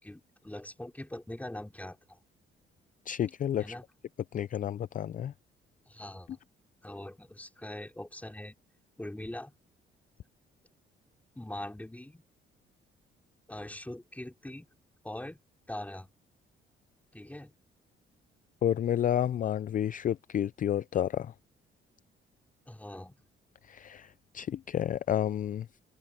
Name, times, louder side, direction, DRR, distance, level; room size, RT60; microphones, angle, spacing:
voice 1, 0.0-2.2 3.6-3.8 5.9-6.4 6.8-8.6 9.0-9.5 11.3-12.2 13.5-14.7 15.0-15.4 15.7-16.1 17.1-17.5 22.7-23.2, left 1 dB, 5° left, 4.5 m, -42 dB
voice 2, 3.1-3.8 4.3-5.3 18.6-21.3 23.6-25.7, left 10 dB, 45° left, 0.4 m, -30 dB
cardioid pair, 90°, 20 cm